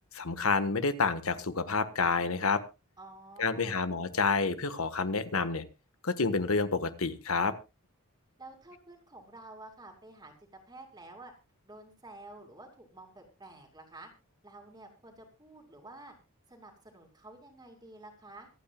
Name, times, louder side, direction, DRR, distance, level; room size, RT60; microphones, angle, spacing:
voice 1, 0.1-2.6 3.4-5.6 6.0-7.5, left 4 dB, 70° left, 11 dB, 1.4 m, -29 dB
voice 2, 3.0-3.8 8.4-10.3 10.7-11.3 11.6-14.1 14.4-16.1 16.5-18.5, right 2 dB, 20° right, 3 dB, 2.7 m, -50 dB
25.5 x 9.0 x 2.3 m, 0.28 s
head